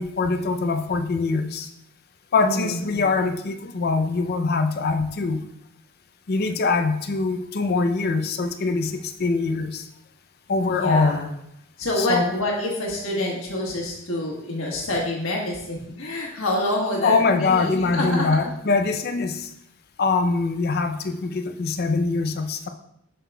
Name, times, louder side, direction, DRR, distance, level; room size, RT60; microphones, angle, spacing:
voice 1, 0.0-1.7 2.3-5.5 6.3-9.8 10.5-11.3 12.0-12.3 17.0-19.5 20.0-22.7, left 4 dB, 50° left, 8 dB, 0.5 m, -23 dB
voice 2, 2.4-3.1 10.7-11.3 11.8-18.5, left 1 dB, 75° left, -2 dB, 1.4 m, -27 dB
7.5 x 6.4 x 2.3 m, 0.77 s
head